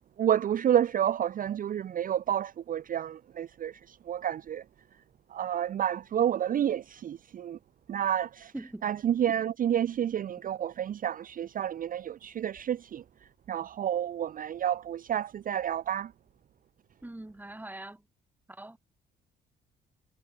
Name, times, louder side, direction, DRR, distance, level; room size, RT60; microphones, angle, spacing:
voice 1, 0.2-4.6 5.3-7.6 7.9-8.5 8.8-13.0 13.5-16.1, right 10 dB, 45° right, 0.5 m, -29 dB
voice 2, 8.5-8.9 17.0-18.0 18.5-18.8, right 1 dB, 10° right, 1.7 m, -42 dB
cardioid pair, 90°, 20 cm